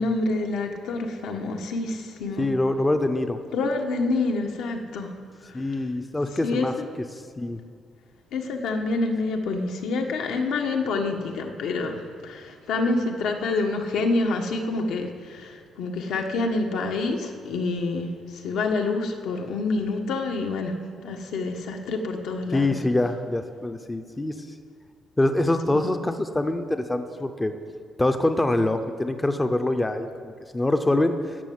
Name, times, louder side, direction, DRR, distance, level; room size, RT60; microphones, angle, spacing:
voice 1, 0.0-2.5 3.5-5.2 5.4-5.7 6.4-6.9 8.3-20.8 21.0-22.7 25.7-25.8, left 3 dB, 80° left, 3 dB, 1.3 m, -27 dB
voice 2, 2.4-3.4 5.5-6.7 7.4-7.6 22.5-24.5 25.2-27.5 28.0-31.4, left 2 dB, 10° left, 8 dB, 0.5 m, -24 dB
13.5 x 6.3 x 9.3 m, 2.2 s
cardioid pair, 175°, 0 cm